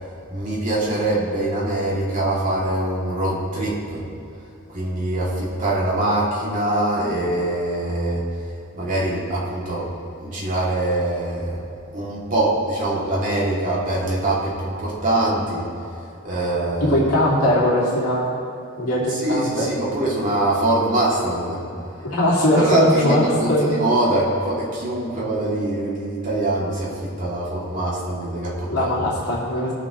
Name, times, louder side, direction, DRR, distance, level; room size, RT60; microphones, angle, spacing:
voice 1, 0.3-4.0 4.7-8.3 8.7-9.9 10.2-11.6 11.9-15.7 16.2-17.0 19.1-21.6 22.6-28.9, right 1 dB, 35° right, -6 dB, 2.8 m, -23 dB
voice 2, 16.9-18.3 18.8-19.7 21.7-23.7 28.7-29.7, left 1 dB, 85° left, -7 dB, 2.8 m, -20 dB
19.5 x 7.5 x 3.2 m, 2.7 s
head